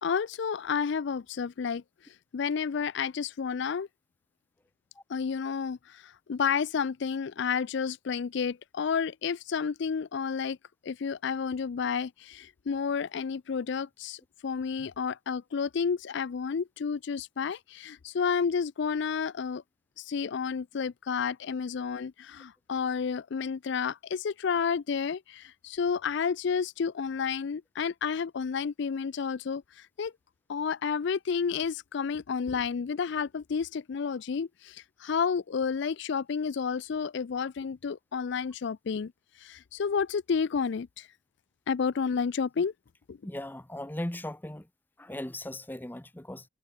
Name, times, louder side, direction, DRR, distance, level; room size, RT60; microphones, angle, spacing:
voice 1, 0.0-1.8 2.3-3.9 5.1-10.6 10.8-19.6 20.0-30.1 30.5-39.1 39.4-41.1 41.7-42.7 43.1-43.2, left 6 dB, 60° left, 0.4 m, -31 dB
voice 2, 43.2-44.6 45.0-46.4, left 1 dB, 10° left, 0.8 m, -38 dB
head